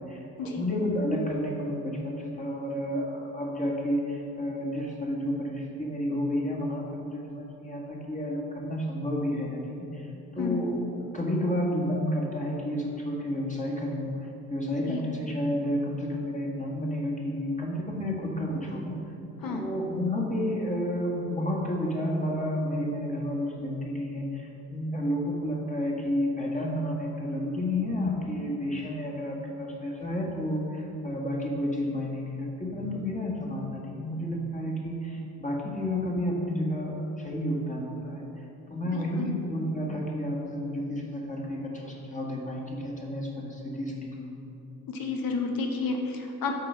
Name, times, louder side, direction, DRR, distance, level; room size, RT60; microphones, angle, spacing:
voice 1, 0.1-10.1 10.3-18.9 19.4-38.3 38.7-44.3, left 1 dB, 15° left, -2 dB, 1.5 m, -31 dB
voice 2, 38.9-39.3 44.9-46.5, left 4 dB, 45° left, 3 dB, 1.2 m, -31 dB
6.9 x 4.5 x 5.5 m, 2.9 s
hypercardioid pair, 50°, 48 cm